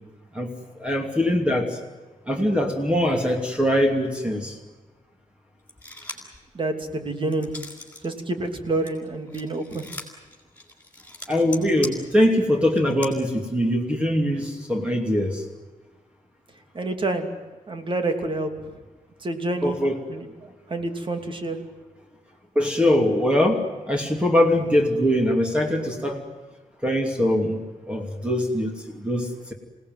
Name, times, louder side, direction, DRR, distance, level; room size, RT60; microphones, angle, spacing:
voice 1, 0.3-1.8 2.3-4.5 11.3-15.4 19.6-20.0 22.5-26.2 26.8-27.6 27.9-29.5, left 1 dB, 10° right, 2 dB, 2.7 m, -22 dB
sound 1, 5.7-6.4 6.8-8.1 8.4-13.1, left 2 dB, 10° left, 5.2 m, -39 dB
voice 2, 6.5-7.5 8.0-9.9 16.7-17.3 17.7-18.7 19.2-19.8 20.1-21.6, right 2 dB, 40° right, 6 dB, 2.8 m, -28 dB
27.5 x 18.0 x 9.4 m, 1.3 s
wide cardioid pair, 175°, 13 cm